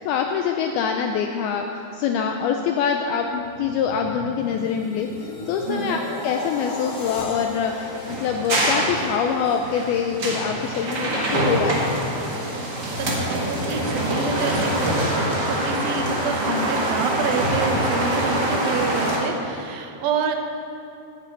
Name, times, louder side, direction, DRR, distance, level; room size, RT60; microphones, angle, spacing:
voice 1, 0.0-1.7 1.9-11.9 16.5-16.7, left 7 dB, 80° left, 3 dB, 2.3 m, -25 dB
sound 1, 3.2-9.4 9.9-10.2, left 2 dB, 45° left, 1.3 m, -36 dB
voice 2, 5.7-6.0 12.9-20.4, right 5 dB, 80° right, 4 dB, 3.1 m, -28 dB
sound 2, 7.7-19.2, right 1 dB, 45° right, 1.4 m, -25 dB
10.5 x 9.0 x 8.6 m, 2.6 s
omnidirectional pair, 4.9 m